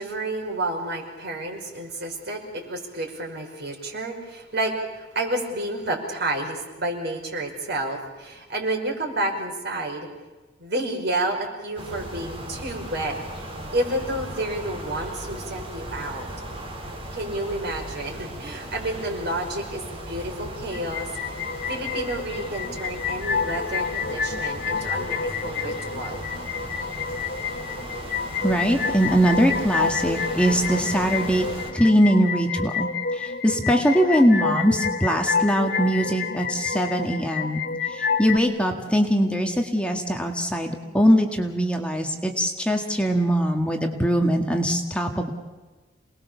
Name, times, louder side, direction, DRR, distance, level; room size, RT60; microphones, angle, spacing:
voice 1, 0.0-10.1 10.6-13.1 13.7-16.3 17.1-21.4 21.7-26.3, right 1 dB, 60° right, 2 dB, 5.4 m, -30 dB
sound 1, 11.8-31.7, right 1 dB, 30° right, 4.8 m, -37 dB
sound 2, 20.7-38.4, left 5 dB, 60° left, 1.4 m, -29 dB
voice 2, 28.4-31.5 31.7-37.6 37.9-45.3, equal, 5° left, 2 dB, 1.7 m, -22 dB
28.0 x 20.0 x 7.0 m, 1.3 s
head